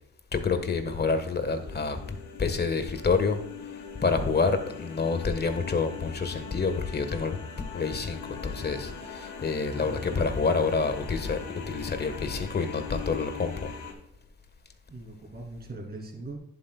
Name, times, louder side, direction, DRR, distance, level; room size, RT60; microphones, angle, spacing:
voice 1, 0.3-11.4 11.7-13.7, left 4 dB, 35° left, 1.3 m, -28 dB
sound 1, 0.6-13.9, left 6 dB, 70° left, 2.5 m, -42 dB
voice 2, 9.7-10.3 14.9-16.4, right 2 dB, 30° right, 2.6 m, -41 dB
11.0 x 8.1 x 2.3 m
cardioid pair, 90°, 30 cm